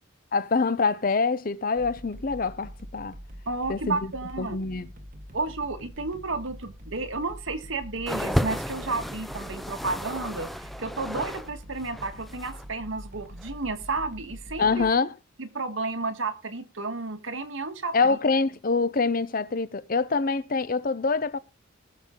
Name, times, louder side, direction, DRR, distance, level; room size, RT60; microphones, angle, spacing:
voice 1, 0.3-3.1 3.7-4.0 4.4-4.9 14.6-15.1 17.9-21.4, left 4 dB, 45° left, 0.7 m, -25 dB
sound 1, 1.8-14.9, equal, 40° right, 1.7 m, -44 dB
voice 2, 3.5-4.6 5.3-14.8 15.4-18.2, right 3 dB, 80° right, 1.7 m, -32 dB
sound 2, 8.1-11.5 11.7-12.6 13.4-13.5, equal, ahead, 0.6 m, -32 dB
19.0 x 6.9 x 3.8 m
head